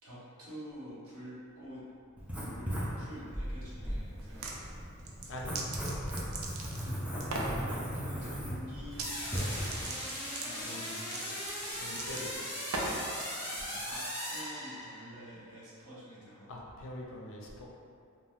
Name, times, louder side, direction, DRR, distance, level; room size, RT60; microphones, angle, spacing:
voice 1, 0.0-1.8 2.2-4.6 6.6-7.3 7.6-9.1 10.4-12.6 13.4-16.5, equal, 85° right, -9 dB, 1.1 m, -49 dB
Writing, 2.2-9.8, equal, 5° right, 0.4 m, -37 dB
sound 1, 4.2-4.6 5.0-6.9 7.2-7.6 8.9-9.1 9.4-13.1, right 2 dB, 65° right, 0.4 m, -38 dB
sound 2, 9.0-15.2, equal, 10° left, 0.9 m, -39 dB
voice 2, 10.6-11.0 11.8-12.3 16.5-17.7, left 1 dB, 65° left, -2 dB, 0.5 m, -43 dB
2.7 x 2.1 x 3.4 m, 2.4 s
head